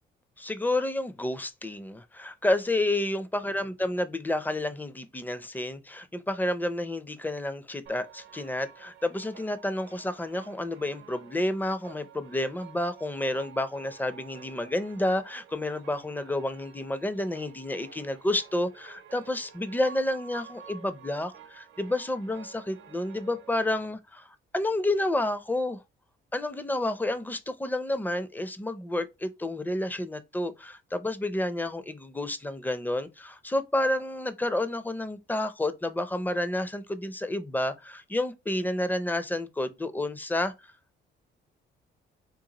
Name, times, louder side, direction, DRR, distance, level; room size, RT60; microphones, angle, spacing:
voice 1, 0.4-25.8 26.3-40.5, left 1 dB, 10° left, 0.4 m, -30 dB
sound 1, 7.9-23.9, right 7 dB, 70° right, 0.7 m, -51 dB
3.8 x 2.3 x 2.9 m
cardioid pair, 90°, 20 cm